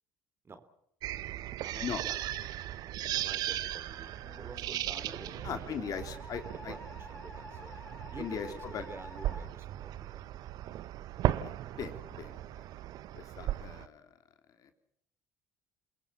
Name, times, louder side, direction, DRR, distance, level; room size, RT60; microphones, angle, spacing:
sound 1, 1.0-13.9, right 13 dB, 60° right, 1.1 m, -37 dB
voice 1, 1.6-6.2 6.5-7.8 8.1-10.2 13.4-13.5, right 4 dB, 30° right, 11 dB, 3.3 m, -49 dB
Musical instrument, 4.2-9.5, left 2 dB, 20° left, 5.9 m, -50 dB
voice 2, 5.4-6.7 8.2-8.5 8.7-8.8 11.4-12.4 13.1-14.0 14.6-14.7, left 8 dB, 50° left, 7 dB, 3.2 m, -39 dB
28.5 x 21.0 x 5.7 m, 0.76 s
hypercardioid pair, 60°, 8 cm